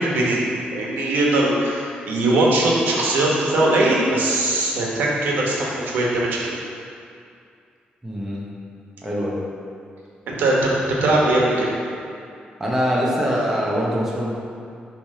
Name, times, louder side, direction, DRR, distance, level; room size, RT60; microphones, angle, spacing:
voice 1, 0.0-6.6 10.3-11.7, right 2 dB, 85° right, -3 dB, 1.2 m, -20 dB
voice 2, 8.0-8.5 9.0-9.4 12.6-14.3, equal, 10° right, -5 dB, 0.8 m, -23 dB
6.6 x 3.3 x 5.5 m, 2.4 s
wide cardioid pair, 170°, 3 cm